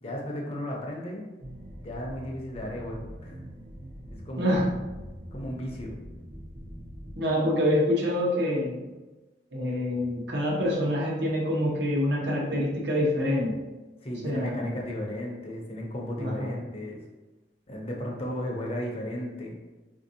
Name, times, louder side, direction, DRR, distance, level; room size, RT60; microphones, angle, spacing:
voice 1, 0.0-1.3 1.8-3.4 4.1-4.6 5.3-6.0 14.0-17.0 17.7-19.6, equal, 35° left, -1 dB, 0.6 m, -35 dB
sound 1, 1.4-7.1, equal, 40° right, 0.6 m, -43 dB
voice 2, 4.4-4.7 7.1-8.8 9.5-13.6 14.2-14.7 16.2-16.5, left 1 dB, 70° right, -3 dB, 0.9 m, -26 dB
3.8 x 2.6 x 2.6 m, 1.1 s
head